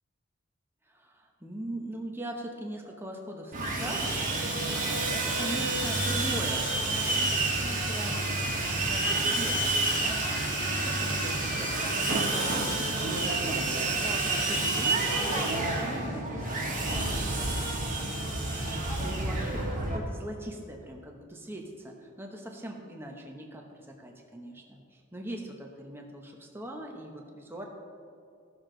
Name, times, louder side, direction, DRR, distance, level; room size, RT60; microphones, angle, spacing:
voice 1, 0.9-4.2 4.7-17.8 18.2-27.6, right 1 dB, 10° right, 1 dB, 0.9 m, -41 dB
Sawing, 3.5-20.0, right 2 dB, 40° right, 1.6 m, -29 dB
15.5 x 6.5 x 3.9 m, 2.6 s
head